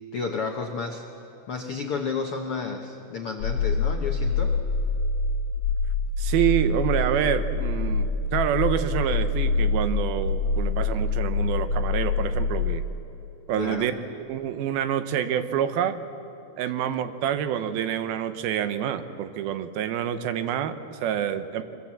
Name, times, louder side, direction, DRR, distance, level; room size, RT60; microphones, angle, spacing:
voice 1, 0.1-1.0 1.5-4.5 13.6-13.9, left 5 dB, 75° left, 3 dB, 1.2 m, -31 dB
sound 1, 3.4-12.8, left 4 dB, 60° left, 2.6 m, -25 dB
voice 2, 6.2-12.8 13.5-13.9 14.3-16.0 16.6-21.6, right 10 dB, 80° right, 10 dB, 2.7 m, -27 dB
24.5 x 24.0 x 7.4 m, 2.9 s
omnidirectional pair, 4.4 m